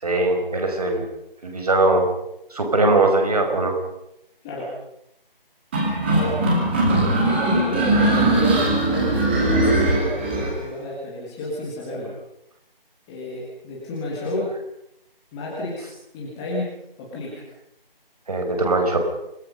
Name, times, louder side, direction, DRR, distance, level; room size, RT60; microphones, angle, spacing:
voice 1, 0.0-1.1 1.4-2.1 2.5-3.8 18.3-19.0, right 2 dB, 40° right, 4 dB, 5.4 m, -20 dB
sound 1, 5.7-10.5, right 2 dB, 10° right, 2.6 m, -20 dB
voice 2, 7.2-12.1 13.1-14.5 15.3-16.7 17.0-17.4, left 1 dB, 5° left, -6 dB, 1.6 m, -31 dB
27.5 x 20.0 x 5.5 m, 0.81 s
figure-of-eight pair, 170°, 29 cm